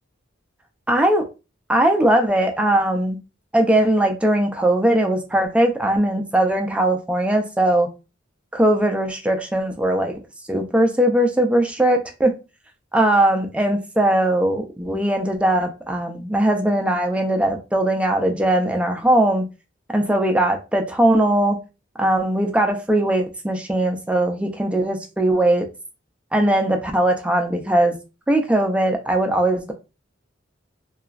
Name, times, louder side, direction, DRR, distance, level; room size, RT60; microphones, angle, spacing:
voice 1, 0.9-1.3 1.7-3.2 3.5-7.9 8.5-10.2 10.5-12.3 12.9-19.5 19.9-21.6 22.0-25.7 26.3-28.0 28.3-29.7, right 1 dB, 5° right, 0.4 m, -19 dB
2.9 x 2.3 x 2.4 m
head